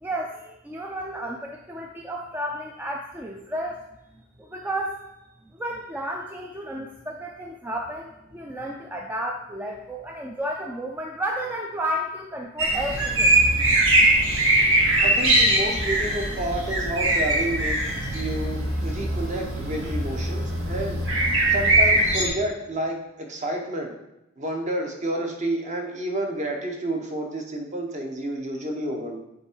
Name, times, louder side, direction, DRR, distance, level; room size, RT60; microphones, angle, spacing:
voice 1, 0.0-3.8 4.1-5.0 5.5-13.4, right 1 dB, 10° right, 1 dB, 0.3 m, -32 dB
sound 1, 12.6-22.3, right 1 dB, 65° right, 1.7 m, -21 dB
voice 2, 15.0-21.0 21.5-23.9 24.4-29.2, right 1 dB, 35° right, 2 dB, 0.9 m, -30 dB
7.0 x 3.4 x 4.5 m, 0.90 s
head